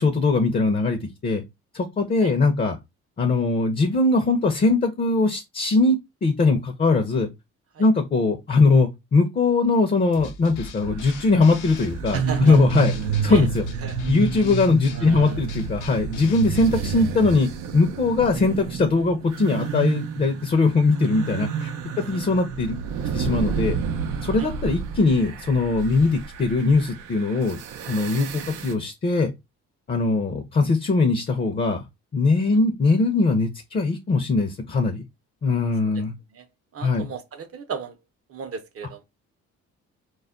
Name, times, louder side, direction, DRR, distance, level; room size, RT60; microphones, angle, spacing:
voice 1, 0.0-1.4 1.7-2.8 3.2-7.3 7.8-12.9 13.2-13.6 14.1-21.7 22.0-22.8 23.1-23.8 24.2-27.6 27.9-29.3 29.9-31.8 32.1-35.0 35.4-36.1 36.8-37.1, left 3 dB, 30° left, 0.5 m, -21 dB
sound 1, 10.1-17.0, left 3 dB, 85° left, 0.7 m, -38 dB
sound 2, 10.8-28.7, right 6 dB, 90° right, 0.5 m, -30 dB
voice 2, 12.1-12.6 13.3-13.5 13.8-14.0 14.9-15.5 16.8-17.1 22.1-22.2 24.4-24.5 26.0-26.1 28.2-28.3 32.5-32.6 35.9-36.0 36.3-36.5 36.7-38.0 38.3-39.0, right 6 dB, 50° right, 0.7 m, -36 dB
2.3 x 2.1 x 3.6 m
cardioid pair, 90°, 30 cm